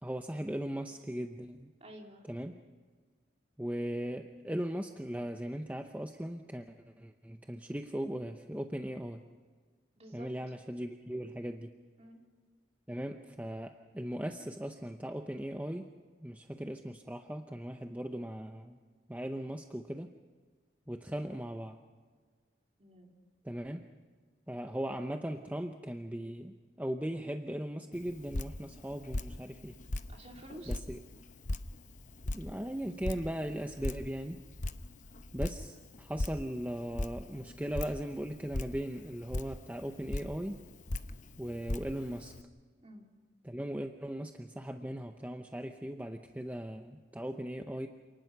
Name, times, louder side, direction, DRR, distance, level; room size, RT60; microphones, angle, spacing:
voice 1, 0.0-1.7 2.3-2.6 3.6-9.3 10.1-11.8 12.9-15.9 16.2-18.8 19.1-20.1 20.9-21.8 23.4-23.8 24.5-29.8 30.7-31.0 32.3-34.4 35.3-40.6 41.4-42.3 43.4-47.9, equal, 10° right, 6 dB, 0.7 m, -38 dB
voice 2, 1.8-2.2 10.0-10.3 12.0-12.2 22.8-23.1 30.1-30.8 42.8-43.1, equal, 35° right, 1 dB, 2.9 m, -50 dB
Drip, 27.9-42.4, left 1 dB, 45° left, 0.8 m, -40 dB
28.0 x 19.5 x 5.8 m, 1.5 s
head